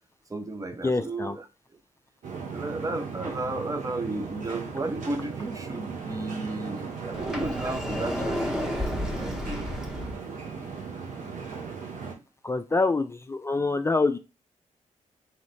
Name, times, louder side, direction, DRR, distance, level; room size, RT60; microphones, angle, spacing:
voice 1, 0.3-1.5 2.5-9.7, right 2 dB, 25° right, 0.7 m, -34 dB
voice 2, 0.8-1.4 12.4-14.2, left 3 dB, 20° left, 0.4 m, -25 dB
sound 1, 2.2-12.1, right 5 dB, 80° right, 1.1 m, -37 dB
Sliding door, 7.1-10.1, left 1 dB, 5° right, 0.9 m, -31 dB
3.9 x 3.1 x 3.2 m
cardioid pair, 70°, 13 cm